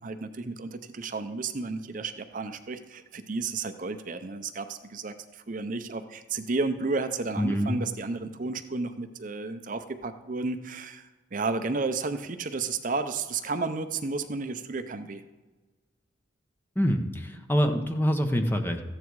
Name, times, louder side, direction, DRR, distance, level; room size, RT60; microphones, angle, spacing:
voice 1, 0.0-15.2, right 3 dB, 45° right, 9 dB, 0.6 m, -32 dB
voice 2, 7.3-7.8 16.8-18.8, equal, 10° left, 5 dB, 0.9 m, -25 dB
14.5 x 9.4 x 4.7 m, 1.3 s
head